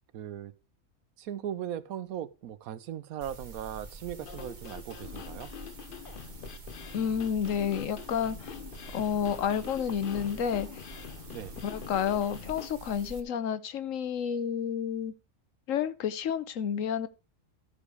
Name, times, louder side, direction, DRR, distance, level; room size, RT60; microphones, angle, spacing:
voice 1, 0.1-0.5 1.2-5.5 11.3-11.5, right 10 dB, 85° right, 1.2 m, -38 dB
sound 1, 3.2-13.2, right 3 dB, 35° right, 1.2 m, -47 dB
sound 2, 4.2-12.7, left 8 dB, 50° left, 0.7 m, -45 dB
voice 2, 6.9-8.5 8.9-10.8 11.6-15.1 15.7-17.1, left 8 dB, 70° left, 1.1 m, -30 dB
13.0 x 5.1 x 4.8 m
omnidirectional pair, 1.4 m